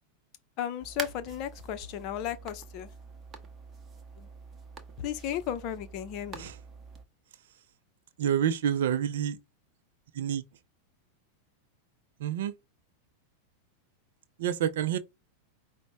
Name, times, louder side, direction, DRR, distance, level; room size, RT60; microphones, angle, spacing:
voice 1, 0.6-2.9 4.2-4.3 5.0-6.5, left 10 dB, 40° left, 0.6 m, -35 dB
sound 1, 0.8-7.0, right 4 dB, 20° right, 0.9 m, -45 dB
voice 2, 8.2-9.4 10.2-10.4 12.2-12.5 14.4-15.0, right 9 dB, 55° right, 0.5 m, -28 dB
5.1 x 2.1 x 4.5 m
figure-of-eight pair, 90°, 0 cm